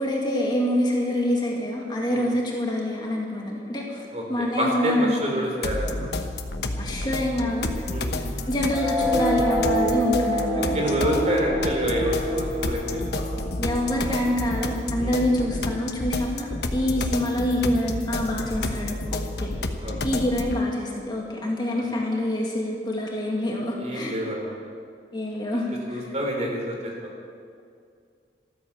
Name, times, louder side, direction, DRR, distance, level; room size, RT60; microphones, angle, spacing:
voice 1, 0.0-5.3 6.8-7.7 8.5-11.2 13.6-19.5 20.0-24.2 25.1-26.0, left 1 dB, 25° left, -2 dB, 2.1 m, -26 dB
voice 2, 4.1-6.1 7.9-8.1 10.7-13.2 15.0-15.2 19.8-19.9 21.8-21.9 23.8-24.5 25.9-26.9, equal, 40° right, 0 dB, 3.4 m, -27 dB
sound 1, 5.6-20.6, left 2 dB, 65° left, 1.1 m, -30 dB
sound 2, 8.7-15.7, equal, 5° left, 4.5 m, -28 dB
14.0 x 13.5 x 7.4 m, 2.2 s
head